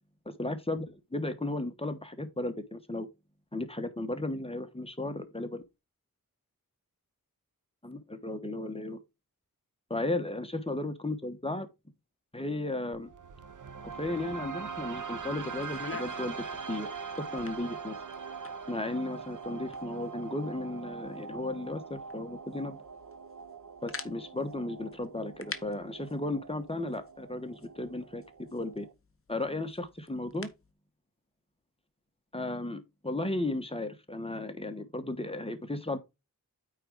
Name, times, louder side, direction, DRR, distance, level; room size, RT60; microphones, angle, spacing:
voice 1, 0.2-3.1 3.5-5.6 7.8-9.0 9.9-11.7 12.3-13.1 13.8-16.9 17.2-18.0 18.7-22.8 23.8-28.2 28.5-28.9 29.3-30.5 32.3-36.0, left 2 dB, 15° left, 1.2 m, -35 dB
sound 1, 12.9-28.9, right 5 dB, 60° right, 0.9 m, -42 dB
sound 2, 15.5-30.7, left 4 dB, 40° left, 1.0 m, -49 dB
8.9 x 3.8 x 4.7 m
wide cardioid pair, 80°, 35 cm